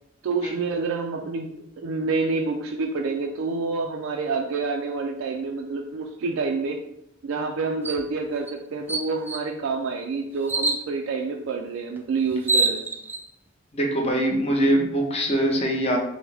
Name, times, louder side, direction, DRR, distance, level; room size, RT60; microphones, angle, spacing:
voice 1, 0.2-6.8 7.2-12.9, right 4 dB, 80° right, 3 dB, 0.4 m, -28 dB
sound 1, 7.8-8.0 8.5-8.6 8.9-9.5 10.5-10.9 12.0-12.1 12.3-13.2, right 3 dB, 10° right, 0.3 m, -25 dB
voice 2, 13.7-16.0, right 1 dB, 30° left, 0 dB, 0.8 m, -23 dB
5.9 x 2.1 x 3.4 m, 0.80 s
head